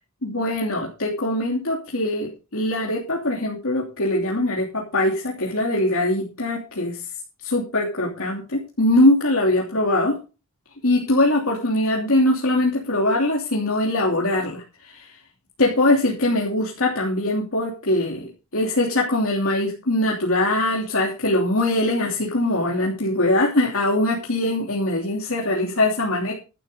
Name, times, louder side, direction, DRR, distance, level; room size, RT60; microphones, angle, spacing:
voice 1, 0.2-7.0 7.4-10.2 10.8-15.1 15.6-26.3, left 1 dB, 80° left, -2 dB, 2.9 m, -22 dB
12.5 x 11.5 x 3.8 m, 0.32 s
head